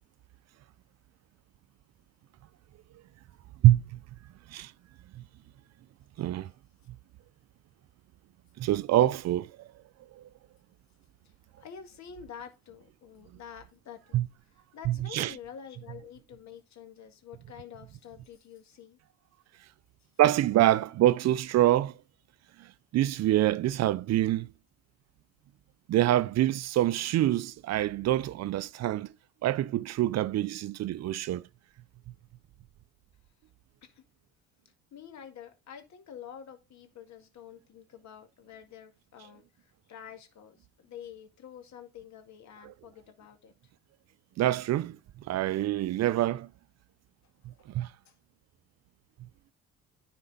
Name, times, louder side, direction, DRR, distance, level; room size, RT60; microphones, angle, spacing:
voice 1, 3.6-4.0 4.5-4.7 5.1-5.2 6.2-6.5 8.6-9.7 10.1-10.2 14.1-14.3 14.9-15.3 20.2-22.0 22.6-24.5 25.9-29.1 29.4-31.4 44.4-46.5 47.5-47.9, right 14 dB, 55° right, 0.5 m, -26 dB
voice 2, 11.6-14.2 14.7-19.0 33.8-34.0 34.9-43.5 47.6-47.7 48.1-48.2, left 8 dB, 60° left, 2.0 m, -48 dB
10.0 x 4.4 x 4.0 m
supercardioid pair, 75°, 32 cm